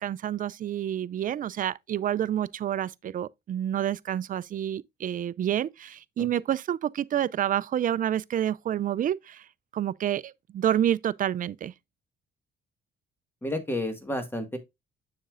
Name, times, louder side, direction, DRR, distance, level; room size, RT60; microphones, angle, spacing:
voice 1, 0.0-9.5 9.7-11.7, right 10 dB, 45° right, 0.4 m, -28 dB
voice 2, 13.4-14.6, left 1 dB, 10° left, 1.7 m, -31 dB
7.1 x 6.6 x 2.5 m
cardioid pair, 90°, 20 cm